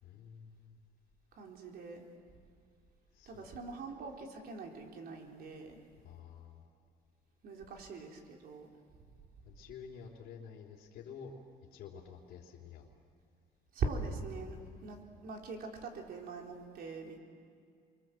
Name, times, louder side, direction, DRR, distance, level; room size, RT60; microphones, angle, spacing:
voice 1, 0.0-0.8 3.1-3.5 6.0-6.6 9.4-11.4 11.7-12.9 14.6-14.7, left 7 dB, 75° left, -4 dB, 3.4 m, -50 dB
voice 2, 1.3-2.0 3.3-5.8 7.4-8.7 13.7-17.2, right 4 dB, 65° right, 1 dB, 4.0 m, -42 dB
29.0 x 23.5 x 7.7 m, 2.2 s
cardioid pair, 110°, 17 cm